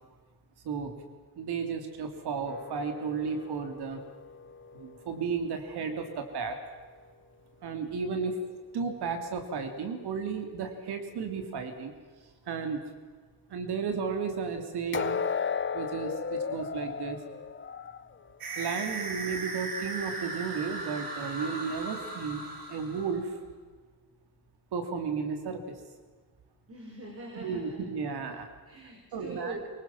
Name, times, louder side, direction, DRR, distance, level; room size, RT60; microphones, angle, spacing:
voice 1, 1.4-4.0 4.7-6.6 7.6-8.4 8.7-11.9 12.5-12.8 13.5-15.2 15.7-17.2 18.6-23.3 24.7-25.6 27.4-28.5 29.1-29.6, right 5 dB, 90° right, 6 dB, 3.3 m, -33 dB
sound 1, 2.5-5.6 14.9-18.8 19.2-19.4 20.0-20.1, left 6 dB, 30° left, 1.1 m, -36 dB
sound 2, 18.4-23.3, right 3 dB, 60° right, 5.3 m, -37 dB
voice 2, 26.7-27.8 28.7-29.7, right 3 dB, 35° right, 1 dB, 5.5 m, -42 dB
24.5 x 23.5 x 7.3 m, 1.5 s
cardioid pair, 125°, 38 cm